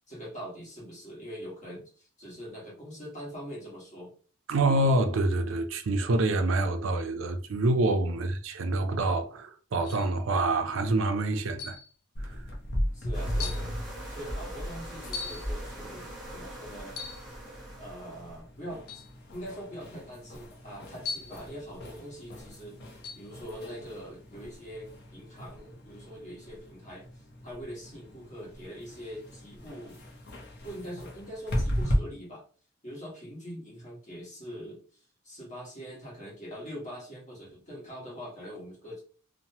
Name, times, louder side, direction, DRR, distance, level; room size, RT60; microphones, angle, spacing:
voice 1, 0.1-4.1 8.1-8.3 12.9-13.7 14.1-17.0 17.8-19.0 19.3-30.0 30.6-32.4 32.8-34.8 35.2-39.0, equal, 35° left, 1.3 m, -43 dB
voice 2, 4.5-11.8 12.2-12.4, right 2 dB, 65° right, 0.4 m, -26 dB
sound 1, 9.8-10.2 11.6-11.9 12.7-12.8 13.4-13.7 15.1-15.5 16.9-17.3 18.9-19.1 21.0-21.4 23.0-23.3, left 5 dB, 85° left, 0.4 m, -38 dB
sound 2, 12.1-32.0, equal, 50° left, 0.7 m, -37 dB
sound 3, 13.1-18.4, equal, 5° right, 0.9 m, -40 dB
2.9 x 2.1 x 2.7 m
head